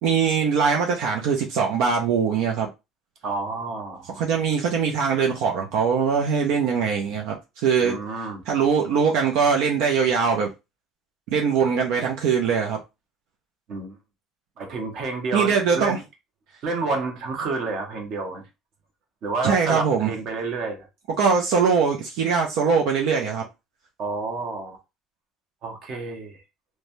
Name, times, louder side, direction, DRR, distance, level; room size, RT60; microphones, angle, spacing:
voice 1, 0.0-2.7 4.2-8.0 8.5-10.5 11.3-12.8 15.3-16.0 19.4-20.1 21.2-23.4, right 6 dB, 80° right, 0.5 m, -22 dB
voice 2, 3.2-4.1 7.8-8.4 13.7-14.0 14.6-16.0 16.6-18.4 19.2-20.9 24.0-24.8 25.6-26.4, right 3 dB, 50° right, 0.9 m, -29 dB
3.1 x 2.2 x 2.6 m
cardioid pair, 140°, 0 cm